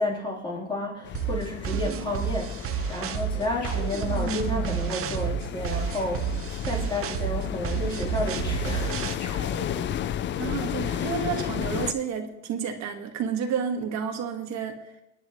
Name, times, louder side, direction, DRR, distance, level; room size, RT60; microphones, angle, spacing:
voice 1, 0.0-9.6, left 1 dB, 15° left, -4 dB, 3.5 m, -31 dB
sound 1, 1.0-11.9, left 10 dB, 40° left, 0.4 m, -33 dB
sound 2, 1.1-9.1, right 8 dB, 50° right, 0.8 m, -30 dB
sound 3, 3.6-6.1 9.2-10.2, left 3 dB, 75° left, 5.6 m, -38 dB
voice 2, 10.4-14.8, right 7 dB, 65° right, 3 dB, 1.8 m, -30 dB
27.0 x 10.0 x 3.1 m, 0.88 s
cardioid pair, 165°, 29 cm